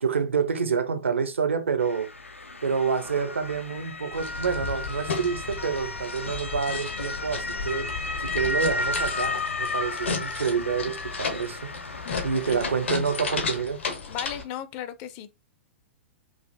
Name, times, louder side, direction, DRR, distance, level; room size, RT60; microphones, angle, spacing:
voice 1, 0.0-2.1 2.6-7.9 8.2-11.7 12.2-13.8, right 6 dB, 75° right, 0.7 m, -28 dB
Motor vehicle (road) / Siren, 1.8-13.6, left 2 dB, 85° left, 0.5 m, -34 dB
sound 1, 4.1-14.4, left 5 dB, 70° left, 1.0 m, -34 dB
voice 2, 14.1-15.3, left 10 dB, 35° left, 0.5 m, -36 dB
4.8 x 2.5 x 2.6 m
figure-of-eight pair, 105°, 7 cm